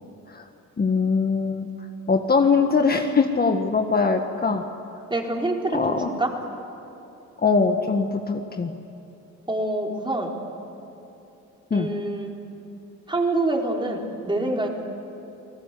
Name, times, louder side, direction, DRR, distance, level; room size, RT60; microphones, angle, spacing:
voice 1, 0.8-1.7 2.1-4.6 5.7-6.1 7.4-8.7 11.7-11.9, left 4 dB, 30° left, 4 dB, 1.6 m, -22 dB
voice 2, 5.1-6.3 9.5-10.4 11.7-12.3 13.1-14.7, right 2 dB, 15° right, 0 dB, 4.3 m, -26 dB
29.5 x 19.5 x 8.5 m, 2.9 s
cardioid pair, 90°, 30 cm